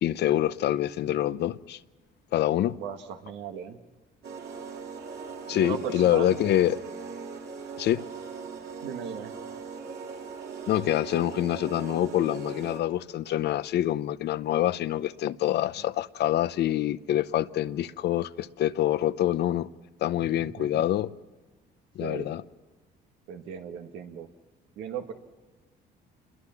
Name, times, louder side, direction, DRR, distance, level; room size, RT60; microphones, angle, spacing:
voice 1, 0.0-1.8 2.3-2.8 5.5-6.8 7.8-8.0 10.7-19.7 20.0-21.1 22.0-22.4, left 12 dB, 65° left, 0.7 m, -26 dB
voice 2, 2.8-3.8 5.5-6.4 8.8-9.3 13.3-13.4 15.8-15.9 20.2-20.9 22.0-22.3 23.3-24.3 24.8-25.1, right 8 dB, 90° right, 1.9 m, -37 dB
sound 1, 4.2-13.0, right 5 dB, 65° right, 3.3 m, -40 dB
27.5 x 22.0 x 5.9 m
cardioid pair, 105°, 18 cm